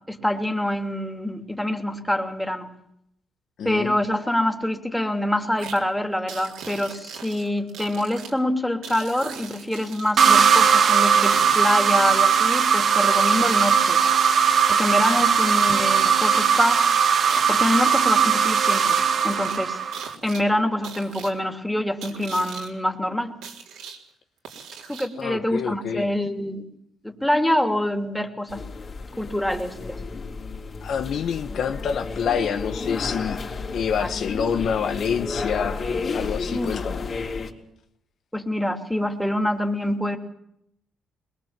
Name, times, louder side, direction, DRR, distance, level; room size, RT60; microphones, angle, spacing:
voice 1, 0.1-2.7 3.6-14.0 14.7-16.9 17.5-19.0 19.2-19.8 20.2-23.4 24.9-26.7 27.0-28.6 29.2-30.0 34.0-34.1 36.5-36.7 38.3-40.2, left 1 dB, 5° left, 2.9 m, -25 dB
voice 2, 3.6-4.0 25.2-26.1 30.8-33.4 33.7-35.8 36.1-37.1, left 7 dB, 65° left, 1.1 m, -27 dB
sound 1, 5.6-5.8 6.3-8.3 8.8-10.3 11.2-14.5 15.0-16.1 16.3-18.1 18.6-19.6 19.9-20.4 20.8-21.3 22.0-22.7 23.4-24.0 24.4-25.2, right 6 dB, 90° right, 4.0 m, -39 dB
sound 2, 10.2-20.1, right 7 dB, 55° right, 1.4 m, -19 dB
sound 3, 28.5-37.5, left 4 dB, 50° left, 3.7 m, -32 dB
22.0 x 21.5 x 7.5 m
cardioid pair, 90°, 0 cm